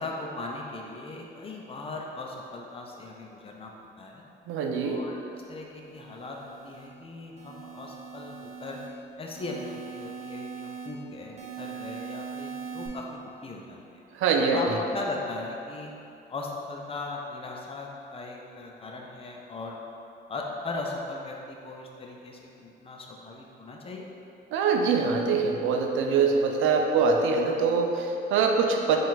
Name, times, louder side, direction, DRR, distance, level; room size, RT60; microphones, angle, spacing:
voice 1, 0.0-4.2 4.8-8.8 9.2-14.0 14.5-15.9 16.3-19.8 20.3-24.1, left 3 dB, 30° left, 0 dB, 0.6 m, -38 dB
voice 2, 4.5-5.0 14.1-14.8 24.5-29.0, right 5 dB, 90° right, 3 dB, 0.4 m, -24 dB
sound 1, 5.8-6.9 7.4-8.9 9.4-10.9 11.4-12.9, right 6 dB, 35° right, 0.6 m, -41 dB
4.3 x 2.5 x 3.9 m, 2.7 s
cardioid pair, 90°, 20 cm